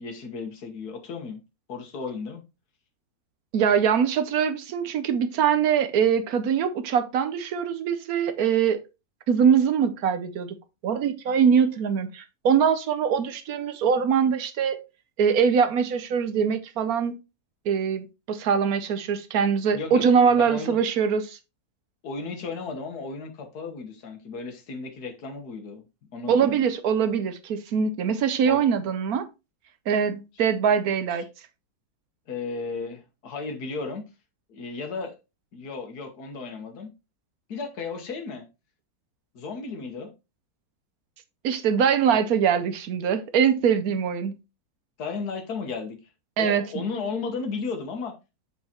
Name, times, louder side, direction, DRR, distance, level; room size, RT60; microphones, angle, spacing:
voice 1, 0.0-1.4 1.7-2.4 19.7-20.8 22.0-25.8 26.1-26.7 28.4-28.6 32.3-34.0 34.5-35.1 35.5-36.9 37.5-38.4 39.3-40.1 42.1-42.2 45.0-46.0 46.4-48.1, left 4 dB, 75° left, 1.7 m, -34 dB
voice 2, 3.5-8.8 9.3-10.5 10.8-14.8 15.2-17.1 17.7-21.4 26.3-29.3 29.9-31.3 41.4-44.3 46.4-46.6, right 7 dB, 70° right, 1.2 m, -23 dB
7.3 x 4.8 x 2.9 m
omnidirectional pair, 1.7 m